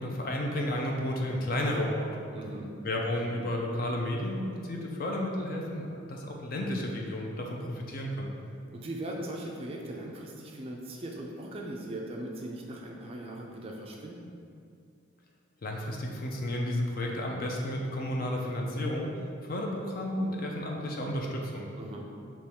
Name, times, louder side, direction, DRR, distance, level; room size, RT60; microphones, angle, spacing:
voice 1, 0.0-2.3 2.8-8.3 15.6-19.1 19.4-21.7, left 1 dB, 45° left, 0 dB, 0.5 m, -32 dB
voice 2, 2.3-2.7 8.7-14.4 21.8-22.1, right 1 dB, 30° right, 0 dB, 0.3 m, -39 dB
3.5 x 3.0 x 4.4 m, 2.5 s
head